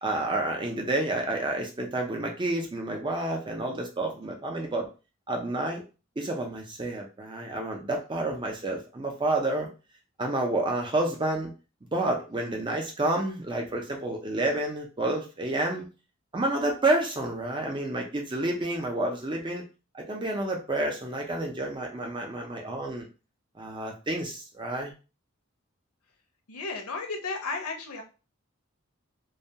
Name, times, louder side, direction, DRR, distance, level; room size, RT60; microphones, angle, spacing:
voice 1, 0.0-4.9 5.3-5.8 6.2-9.7 10.2-11.5 11.9-15.9 16.3-19.6 19.9-23.1 23.6-24.9, right 2 dB, 20° right, 1 dB, 0.5 m, -29 dB
voice 2, 26.5-28.0, left 3 dB, 90° left, 3 dB, 0.6 m, -33 dB
2.2 x 2.2 x 2.7 m, 0.32 s
head